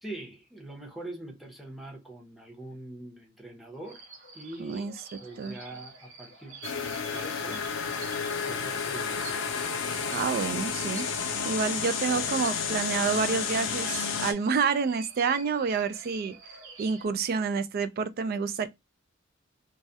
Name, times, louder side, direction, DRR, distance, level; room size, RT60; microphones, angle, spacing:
voice 1, 0.0-4.0 4.3-4.9 5.2-6.6 7.1-7.7 8.4-9.2, right 2 dB, ahead, 0.7 m, -43 dB
sound 1, 3.8-17.1, right 4 dB, 75° right, 0.9 m, -48 dB
voice 2, 4.6-4.9 5.4-5.6 10.1-11.1 11.4-16.3 16.8-18.7, right 5 dB, 50° right, 0.3 m, -28 dB
sound 2, 6.6-14.3, left 6 dB, 70° left, 0.5 m, -31 dB
2.3 x 2.1 x 2.6 m
head